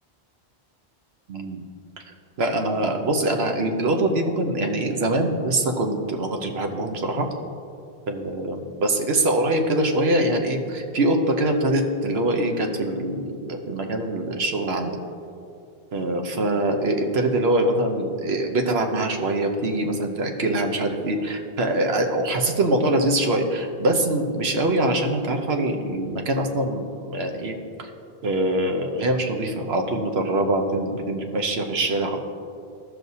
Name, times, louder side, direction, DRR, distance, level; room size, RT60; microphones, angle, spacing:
voice 1, 1.3-1.6 2.4-7.3 8.1-15.0 15.9-27.9 28.2-32.2, right 1 dB, 75° right, 4 dB, 1.1 m, -23 dB
14.5 x 6.1 x 2.7 m, 2.5 s
omnidirectional pair, 1.1 m